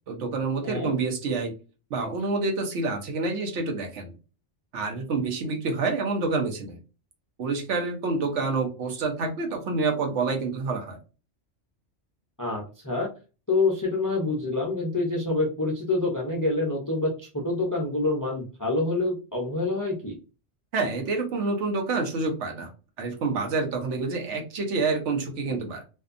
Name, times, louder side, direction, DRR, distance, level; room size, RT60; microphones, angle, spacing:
voice 1, 0.1-1.5 1.9-4.1 4.7-6.8 7.4-11.0 20.7-22.7 23.0-25.8, right 3 dB, 80° right, 3 dB, 1.0 m, -28 dB
voice 2, 0.6-0.9 12.4-13.1 13.5-20.2, left 2 dB, 30° left, -1 dB, 0.3 m, -27 dB
2.6 x 2.2 x 2.4 m, 0.33 s
omnidirectional pair, 1.2 m